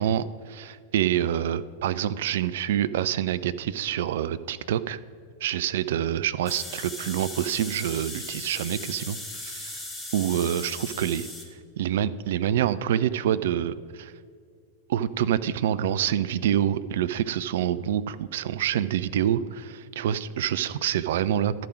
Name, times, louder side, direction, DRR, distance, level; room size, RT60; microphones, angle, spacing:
voice 1, 0.0-5.0 5.4-9.8 10.1-11.3 11.8-14.1 14.9-21.5, right 10 dB, 55° right, 15 dB, 0.3 m, -26 dB
sound 1, 6.5-11.4, left 2 dB, 5° left, 1.4 m, -38 dB
12.0 x 5.0 x 6.2 m, 2.2 s
figure-of-eight pair, 90°, 0 cm